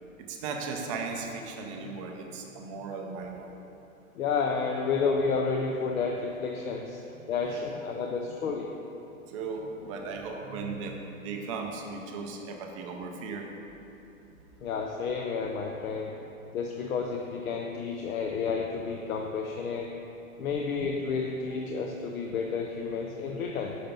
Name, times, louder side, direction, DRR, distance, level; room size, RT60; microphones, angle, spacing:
voice 1, 0.2-3.5 7.2-7.6 9.3-13.5, right 4 dB, 25° right, 1 dB, 0.5 m, -37 dB
voice 2, 4.2-7.0 7.3-8.7 14.6-16.2 16.5-19.9 20.4-23.8, left 5 dB, 75° left, 1 dB, 0.7 m, -31 dB
5.8 x 5.4 x 5.3 m, 2.9 s
hypercardioid pair, 140°, 42 cm